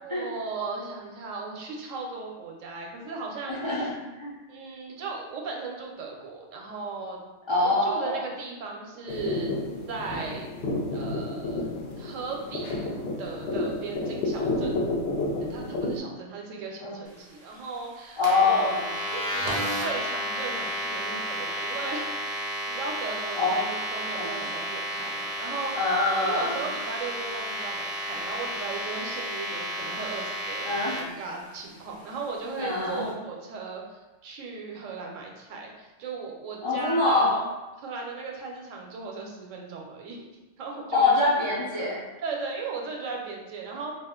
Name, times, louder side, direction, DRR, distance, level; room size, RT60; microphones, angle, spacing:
voice 1, 0.0-3.9 4.5-7.2 7.6-9.5 9.9-10.5 10.9-11.7 12.0-12.9 13.2-14.8 15.4-18.7 19.1-22.4 22.7-25.8 26.2-37.4 37.8-40.3 40.6-41.1 42.2-44.0, right 4 dB, 80° right, 0 dB, 0.9 m, -36 dB
voice 2, 3.5-3.9 4.2-4.3 7.5-8.2 16.8-17.0 18.2-18.9 23.4-23.6 24.2-24.3 25.7-26.6 30.6-31.0 32.6-33.1 36.6-37.3 40.9-42.0, left 3 dB, 45° left, -7 dB, 0.3 m, -24 dB
sound 1, 9.1-16.0, left 2 dB, 65° left, 0.7 m, -31 dB
sound 2, 18.2-31.0, equal, 45° right, 0.6 m, -32 dB
2.4 x 2.3 x 3.6 m, 1.1 s
omnidirectional pair, 1.3 m